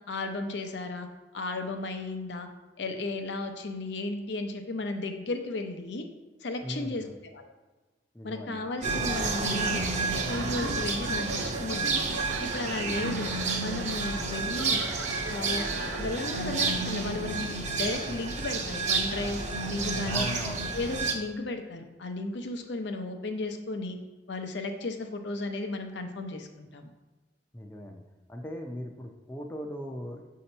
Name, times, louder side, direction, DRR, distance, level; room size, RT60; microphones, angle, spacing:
voice 1, 0.1-1.1 1.3-2.5 2.8-6.1 6.4-7.0 7.3-7.5 8.2-9.8 10.3-12.1 12.4-13.3 13.6-14.8 15.3-19.4 19.7-20.2 20.7-24.0 24.3-26.9, left 2 dB, 70° left, 5 dB, 0.7 m, -34 dB
voice 2, 6.6-7.2 8.1-8.7 12.9-13.1 20.1-20.6 27.5-28.0 28.3-30.3, equal, 10° left, 2 dB, 0.5 m, -38 dB
sound 1, 8.8-21.1, right 3 dB, 40° right, 0.8 m, -30 dB
sound 2, 10.1-16.7, right 3 dB, 75° right, 0.6 m, -38 dB
6.8 x 2.8 x 5.4 m, 1.2 s
head